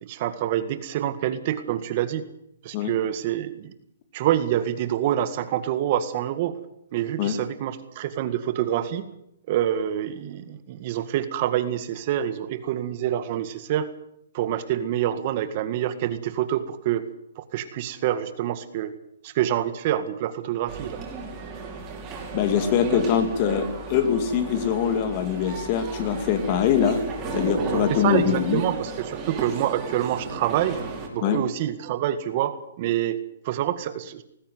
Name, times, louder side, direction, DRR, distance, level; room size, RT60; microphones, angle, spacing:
voice 1, 0.0-2.2 2.6-3.7 4.1-6.5 6.9-9.0 9.5-13.9 14.3-17.1 17.4-18.9 19.2-21.0 28.0-30.8 31.1-33.2 33.5-34.2, right 11 dB, 40° right, 11 dB, 1.9 m, -26 dB
sound 1, 20.7-31.1, right 4 dB, 20° right, 5.4 m, -34 dB
voice 2, 22.3-27.0 27.3-28.6 31.2-31.4, left 8 dB, 35° left, 9 dB, 2.7 m, -23 dB
20.0 x 15.0 x 9.5 m, 0.76 s
hypercardioid pair, 155°, 0 cm